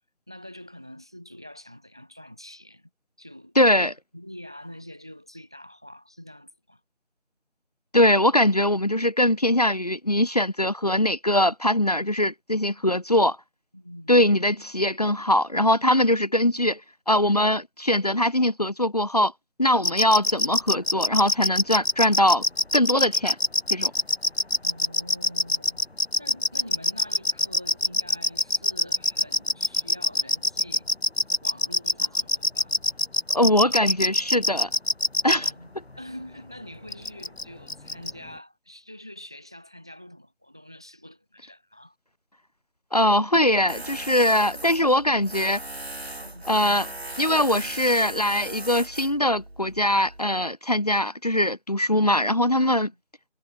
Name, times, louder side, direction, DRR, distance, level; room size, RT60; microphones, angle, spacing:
voice 1, 0.3-2.9 3.2-6.8 13.7-14.2 24.6-25.8 26.2-30.9 31.4-32.8 35.2-42.0 46.2-46.5, left 1 dB, 5° right, 2.4 m, -45 dB
voice 2, 3.6-3.9 7.9-13.4 14.1-16.8 17.1-19.3 19.6-22.4 22.7-23.4 23.7-23.9 33.3-34.7 35.2-35.5 42.9-45.6 46.5-46.9 47.2-52.9, left 1 dB, 35° left, 2.3 m, -21 dB
sound 1, 19.8-35.5 36.9-37.4 37.7-38.1, left 2 dB, 55° left, 1.8 m, -23 dB
Tools, 43.7-50.2, right 1 dB, 55° right, 6.3 m, -38 dB
figure-of-eight pair, 175°, 36 cm